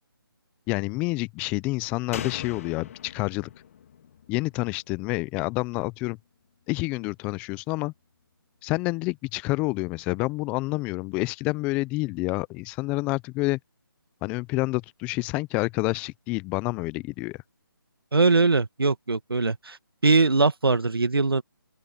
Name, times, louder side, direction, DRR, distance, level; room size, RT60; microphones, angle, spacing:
voice 1, 0.7-3.5 4.3-6.2 6.7-7.9 8.6-13.6 14.2-17.4, left 23 dB, 10° left, 0.5 m, -28 dB
Slam, 2.1-5.6 5.9-6.0, left 8 dB, 35° left, 1.9 m, -41 dB
voice 2, 18.1-19.8 20.0-21.4, right 3 dB, 80° right, 1.7 m, -21 dB
open air
figure-of-eight pair, 155°, 12 cm